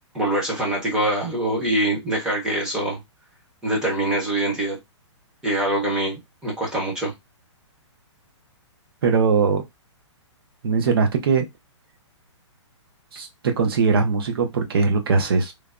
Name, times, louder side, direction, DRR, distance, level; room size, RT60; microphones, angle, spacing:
voice 1, 0.1-3.0 3.6-4.8 5.4-7.1, right 1 dB, 5° right, 0.6 m, -24 dB
voice 2, 9.0-9.6 10.6-11.5 13.1-15.5, right 5 dB, 50° right, 0.6 m, -20 dB
3.1 x 2.1 x 2.4 m
hypercardioid pair, 170°, 16 cm